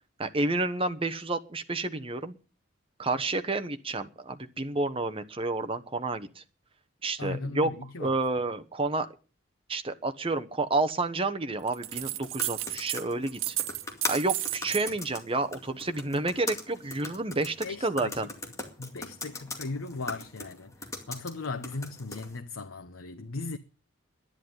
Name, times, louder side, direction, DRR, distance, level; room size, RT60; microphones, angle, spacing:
voice 1, 0.2-2.4 3.0-6.4 7.0-7.7 8.0-9.1 9.7-13.5 14.1-17.6 17.8-18.3, right 2 dB, 25° right, 1.1 m, -30 dB
voice 2, 7.2-8.1 17.6-18.1 18.8-20.7 21.1-23.6, left 3 dB, 90° left, 1.0 m, -37 dB
sound 1, 11.7-13.0 13.3-15.0, right 15 dB, 80° right, 0.8 m, -33 dB
sound 2, 11.8-22.4, left 3 dB, 15° left, 2.2 m, -40 dB
10.5 x 10.5 x 9.5 m
head